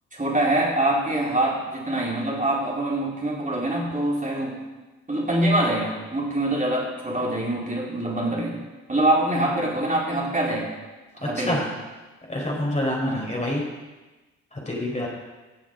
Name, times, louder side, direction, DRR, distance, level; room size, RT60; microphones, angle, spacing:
voice 1, 0.1-4.6 5.1-8.6 8.9-10.7 11.2-11.7 13.1-13.2, right 1 dB, 20° right, -4 dB, 4.2 m, -24 dB
voice 2, 12.3-13.6 14.7-15.1, left 1 dB, 20° left, -3 dB, 4.4 m, -26 dB
19.5 x 7.1 x 5.3 m, 1.2 s
figure-of-eight pair, 40°, 38 cm